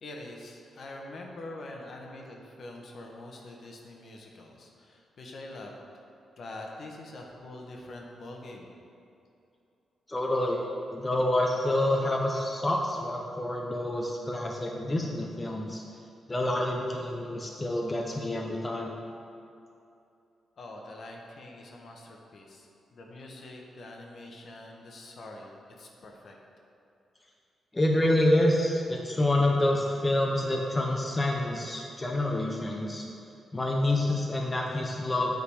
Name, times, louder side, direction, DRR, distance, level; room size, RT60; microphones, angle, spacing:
voice 1, 0.0-5.7 6.4-8.7 20.6-26.3, left 2 dB, 55° left, 0 dB, 1.0 m, -44 dB
voice 2, 10.1-10.6 10.9-15.8 16.3-18.9 27.7-33.0 33.5-35.4, left 1 dB, 20° left, 0 dB, 0.6 m, -27 dB
8.6 x 3.9 x 4.8 m, 2.7 s
cardioid pair, 105°, 0 cm